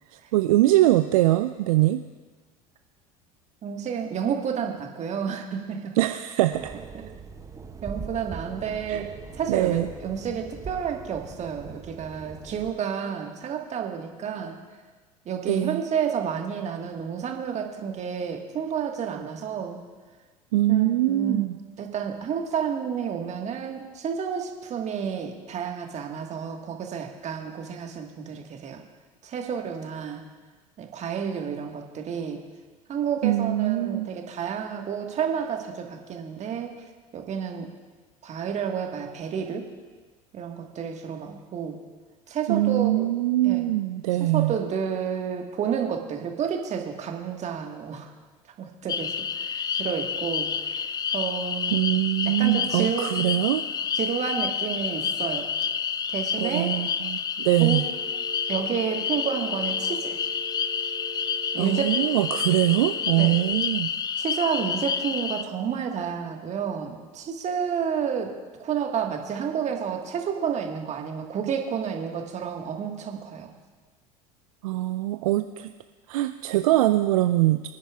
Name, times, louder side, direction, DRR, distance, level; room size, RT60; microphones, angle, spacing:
voice 1, 0.1-2.0 6.0-6.7 8.9-9.0 9.5-9.9 15.5-15.8 20.5-21.6 33.2-34.1 42.5-44.5 51.7-53.6 56.4-57.8 61.6-63.9 74.6-75.7 76.1-77.7, right 16 dB, 65° right, 9 dB, 0.4 m, -23 dB
voice 2, 3.6-6.0 6.9-7.0 7.8-14.6 15.2-19.8 20.7-21.5 21.8-28.8 29.2-30.2 30.8-32.4 32.9-36.8 37.1-37.7 38.2-39.7 40.3-41.8 42.3-43.1 43.4-43.7 44.2-48.1 48.6-51.8 52.2-53.1 53.9-55.5 56.1-56.8 57.6-57.8 58.5-60.2 61.5-62.0 63.2-63.4 64.2-73.5, right 7 dB, 35° right, 3 dB, 1.6 m, -30 dB
sound 1, 6.5-12.7, right 5 dB, 15° right, 0.8 m, -41 dB
sound 2, 48.9-65.4, left 7 dB, 20° left, 0.4 m, -29 dB
Telephone, 57.5-63.5, right 3 dB, 40° left, 2.9 m, -42 dB
25.0 x 10.0 x 2.4 m, 1.3 s
figure-of-eight pair, 75°, 19 cm